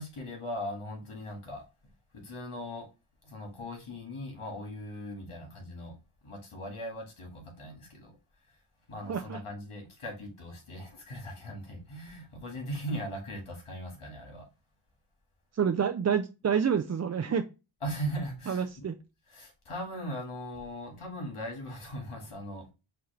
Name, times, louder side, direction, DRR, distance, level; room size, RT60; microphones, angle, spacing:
voice 1, 0.0-1.7 2.1-2.9 3.2-6.0 6.2-8.2 8.5-8.6 8.9-14.5 17.8-18.9 19.3-22.7, equal, 85° left, 1.9 m, -39 dB
voice 2, 9.1-9.4 15.5-17.4 18.5-18.9, right 7 dB, 35° right, 0.4 m, -28 dB
5.8 x 2.8 x 3.2 m
cardioid pair, 55°, 49 cm